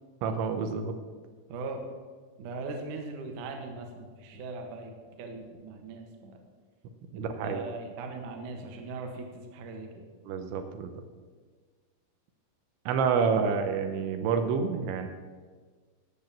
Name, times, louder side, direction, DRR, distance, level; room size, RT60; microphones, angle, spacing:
voice 1, 0.2-0.9 7.1-7.6 10.3-10.9 12.9-15.1, right 6 dB, 80° right, 7 dB, 3.1 m, -28 dB
voice 2, 1.5-1.8 2.4-6.4 7.1-9.3 9.5-10.0, right 3 dB, 60° right, 4 dB, 2.2 m, -40 dB
17.0 x 6.2 x 7.5 m, 1.5 s
omnidirectional pair, 5.5 m